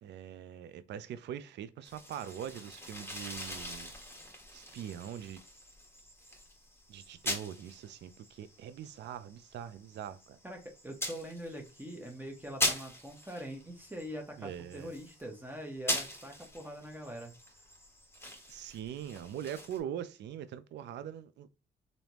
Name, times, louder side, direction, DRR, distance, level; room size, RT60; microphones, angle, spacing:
voice 1, 0.0-3.9 4.5-5.4 6.9-10.4 14.4-14.9 18.5-21.5, right 9 dB, 60° right, 0.4 m, -42 dB
sound 1, 1.8-19.8, left 1 dB, 10° left, 1.3 m, -41 dB
voice 2, 10.4-17.3, equal, 10° right, 0.8 m, -43 dB
3.3 x 2.6 x 2.9 m
cardioid pair, 90°, 20 cm